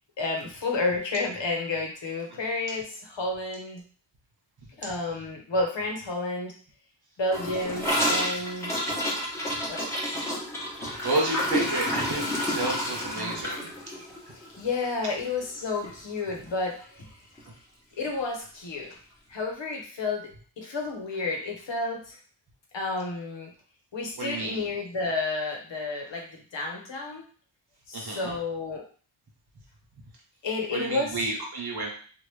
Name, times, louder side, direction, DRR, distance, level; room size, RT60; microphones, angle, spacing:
voice 1, 0.2-3.8 4.8-6.5 7.2-8.8 9.7-10.2 13.2-13.4 14.3-17.1 18.0-19.0 19.3-22.2 22.7-23.5 23.9-27.3 27.9-28.8 30.4-31.2, left 3 dB, 60° left, 1 dB, 1.0 m, -31 dB
Gurgling / Toilet flush, 7.3-15.6 15.8-16.0 16.3-16.7 17.0-17.1 17.4-17.5 18.4-18.5, equal, 5° left, 1.1 m, -30 dB
voice 2, 10.8-13.7 24.2-24.7 27.9-28.3 30.7-31.9, right 2 dB, 50° right, -1 dB, 1.2 m, -31 dB
3.0 x 2.5 x 3.2 m, 0.43 s
wide cardioid pair, 75°, 49 cm